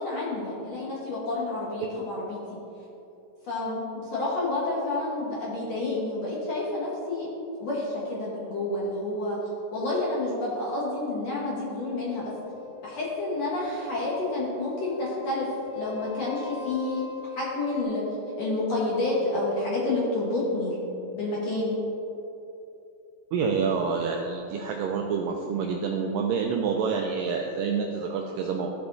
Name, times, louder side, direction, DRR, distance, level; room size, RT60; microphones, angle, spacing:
voice 1, 0.0-2.4 3.4-7.3 7.6-9.4 9.7-12.3 12.8-15.5 15.7-17.0 17.4-18.0 18.4-20.8 21.1-21.7, left 2 dB, 60° left, -6 dB, 1.9 m, -29 dB
sound 1, 12.2-17.8, left 8 dB, 80° left, 2.5 m, -42 dB
voice 2, 23.3-28.7, right 5 dB, 85° right, 2 dB, 1.9 m, -28 dB
14.5 x 6.8 x 2.7 m, 2.9 s
omnidirectional pair, 4.4 m